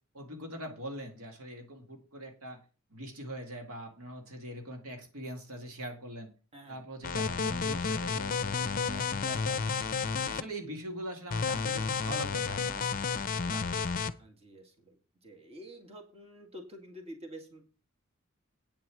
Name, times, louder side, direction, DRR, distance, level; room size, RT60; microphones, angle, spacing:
voice 1, 0.1-2.6 2.9-6.3 6.7-9.9 10.3-13.2, right 1 dB, 85° right, 3 dB, 2.4 m, -42 dB
sound 1, 7.0-10.4 11.3-14.1, left 5 dB, 40° left, 0.6 m, -31 dB
voice 2, 14.2-15.0 15.2-17.6, right 1 dB, 30° right, 2 dB, 2.0 m, -48 dB
9.1 x 4.7 x 7.6 m, 0.35 s
head